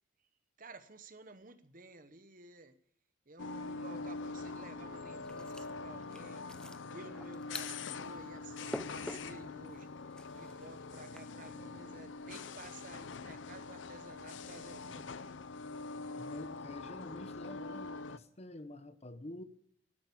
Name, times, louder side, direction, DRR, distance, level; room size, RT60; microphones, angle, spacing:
voice 1, 0.6-2.7 3.3-6.4 6.9-9.9 10.3-15.4, right 3 dB, 45° right, 11 dB, 1.0 m, -53 dB
sound 1, 3.4-18.2, left 3 dB, 70° left, 0.6 m, -44 dB
sound 2, 5.2-11.2, left 1 dB, 5° left, 0.5 m, -49 dB
voice 2, 16.2-19.4, left 1 dB, 30° left, 11 dB, 0.9 m, -48 dB
12.5 x 11.5 x 8.4 m, 0.68 s
head